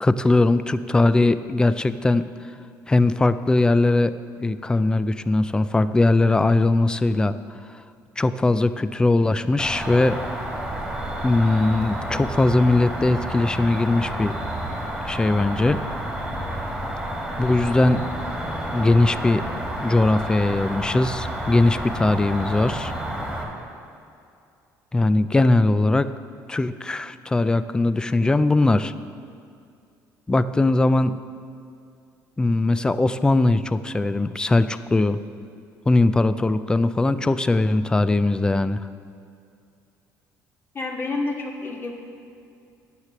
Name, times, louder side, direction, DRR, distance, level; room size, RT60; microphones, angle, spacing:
voice 1, 0.0-2.2 2.9-4.1 4.4-7.3 8.2-10.2 11.2-14.3 15.0-15.8 17.4-18.0 18.7-19.4 19.8-22.9 24.9-26.1 26.5-28.9 30.3-31.2 32.4-35.2 35.9-38.8, left 2 dB, 10° left, 13 dB, 0.3 m, -20 dB
Cricket, 9.6-23.4, equal, 5° right, 1.9 m, -30 dB
voice 2, 40.7-42.0, left 3 dB, 35° left, 1 dB, 1.5 m, -29 dB
9.6 x 6.7 x 7.4 m, 2.5 s
cardioid pair, 115°, 7 cm